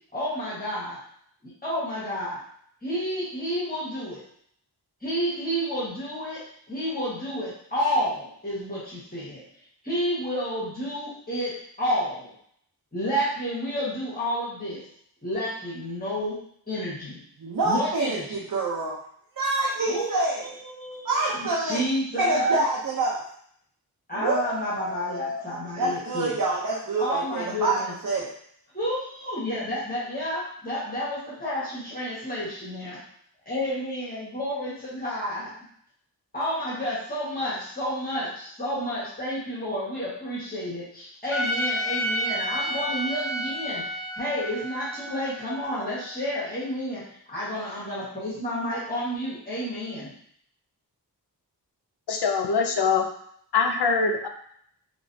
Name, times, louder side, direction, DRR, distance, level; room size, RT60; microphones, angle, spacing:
voice 1, 0.1-1.0 1.4-2.4 2.8-4.2 5.0-9.4 9.8-12.3 12.9-14.8 15.2-17.2 17.6-18.4 19.9-22.6 24.1-26.3 27.0-28.0 28.7-33.0 33.4-35.5 36.3-43.8 44.1-50.1, equal, 20° left, -9 dB, 1.4 m, -30 dB
voice 2, 17.4-19.0 19.4-20.4 21.0-21.8 22.2-23.2 24.2-25.4 25.8-28.3, right 2 dB, 55° right, -4 dB, 0.7 m, -27 dB
Trumpet, 41.3-46.5, equal, ahead, 0.7 m, -31 dB
voice 3, 52.1-53.1 53.5-54.3, left 5 dB, 75° left, 4 dB, 0.6 m, -23 dB
3.1 x 3.0 x 2.7 m, 0.66 s
wide cardioid pair, 70°, 40 cm